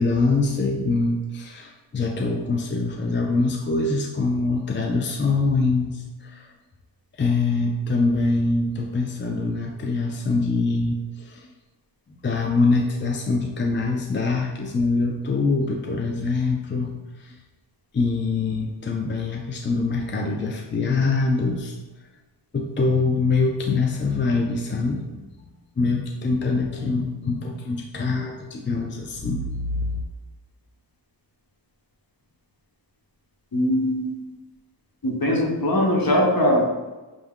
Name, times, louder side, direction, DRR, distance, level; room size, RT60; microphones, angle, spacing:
voice 1, 0.0-6.5 7.2-11.5 12.2-16.9 17.2-17.3 17.9-21.8 22.5-25.2 25.8-30.0, left 3 dB, 25° left, 1 dB, 0.4 m, -24 dB
voice 2, 33.5-34.1 35.0-36.7, left 1 dB, 50° left, 0 dB, 1.0 m, -21 dB
6.1 x 2.3 x 3.6 m, 1.2 s
wide cardioid pair, 60°, 44 cm